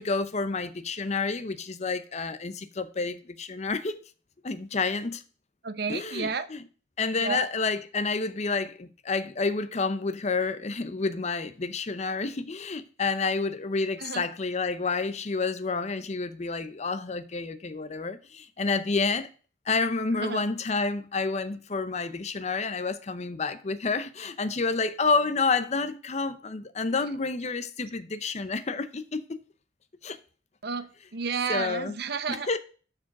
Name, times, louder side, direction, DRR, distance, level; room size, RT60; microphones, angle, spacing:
voice 1, 0.0-4.0 4.4-5.2 5.9-6.6 7.0-19.3 19.7-29.4 30.0-30.2 31.5-31.9 32.3-32.6, left 4 dB, 35° left, 0.6 m, -29 dB
voice 2, 5.6-6.5 7.1-7.5 14.0-14.3 20.2-20.5 30.6-32.6, right 5 dB, 55° right, 0.7 m, -32 dB
7.2 x 5.1 x 5.8 m
head